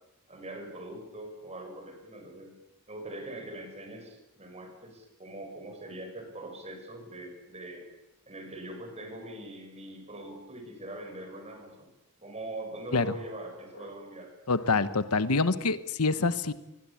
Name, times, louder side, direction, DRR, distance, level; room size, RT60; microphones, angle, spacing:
voice 1, 0.3-2.5 2.9-7.9 8.3-11.9 12.2-14.3, right 1 dB, 30° right, 5 dB, 6.6 m, -42 dB
voice 2, 14.5-16.5, left 3 dB, 85° left, 14 dB, 1.2 m, -26 dB
24.0 x 22.0 x 8.6 m, 0.94 s
head